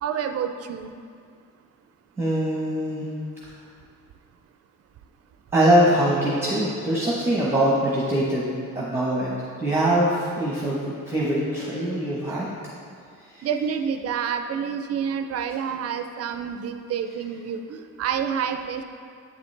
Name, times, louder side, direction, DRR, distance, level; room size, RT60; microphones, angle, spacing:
voice 1, 0.0-0.9 13.4-18.8, right 7 dB, 50° right, 7 dB, 0.4 m, -28 dB
voice 2, 2.2-3.1 5.5-8.5 8.7-9.3 9.6-12.5 13.3-13.5, right 1 dB, 10° right, -6 dB, 0.9 m, -22 dB
8.2 x 6.9 x 3.2 m, 2.3 s
cardioid pair, 140°, 32 cm